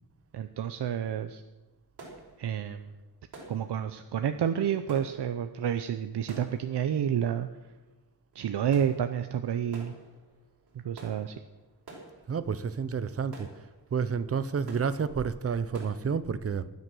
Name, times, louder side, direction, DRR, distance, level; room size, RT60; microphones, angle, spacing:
voice 1, 0.3-1.4 2.4-2.9 3.5-7.5 8.3-9.9 10.8-11.3, right 9 dB, 85° right, 0.8 m, -29 dB
sound 1, 1.6-16.0, right 2 dB, 60° right, 5.6 m, -52 dB
voice 2, 12.3-13.5 13.9-16.7, right 6 dB, 35° right, 0.7 m, -30 dB
23.5 x 9.6 x 6.2 m
wide cardioid pair, 175°, 39 cm